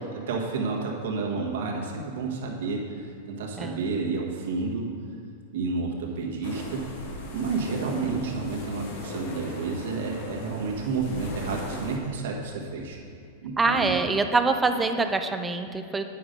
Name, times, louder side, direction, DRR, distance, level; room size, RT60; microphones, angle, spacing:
voice 1, 0.1-4.9 5.5-6.9 7.3-13.0 13.4-14.0, right 4 dB, 70° right, -1 dB, 1.6 m, -30 dB
sound 1, 6.4-12.0, left 2 dB, 60° left, 1.4 m, -38 dB
voice 2, 13.6-16.0, right 3 dB, 10° right, 7 dB, 0.4 m, -25 dB
9.2 x 5.8 x 5.3 m, 2.5 s
supercardioid pair, 150°, 0 cm